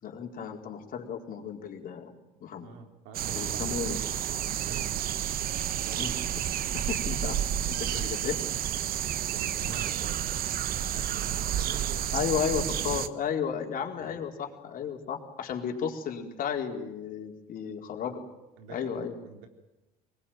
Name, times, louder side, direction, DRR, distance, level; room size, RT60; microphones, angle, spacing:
voice 1, 0.0-2.1 2.4-2.7 3.4-4.0 6.0-6.1 6.7-7.4 7.7-8.4 12.1-18.2 18.7-19.1, left 7 dB, 50° left, 2 dB, 4.4 m, -33 dB
voice 2, 2.6-3.8 4.3-5.2 5.7-6.2 9.3-12.3 14.0-14.1 18.6-19.5, right 5 dB, 70° right, 4 dB, 4.1 m, -46 dB
sound 1, 3.1-13.1, right 11 dB, 50° right, 1.2 m, -30 dB
24.5 x 20.5 x 9.3 m, 0.97 s
hypercardioid pair, 70°, 19 cm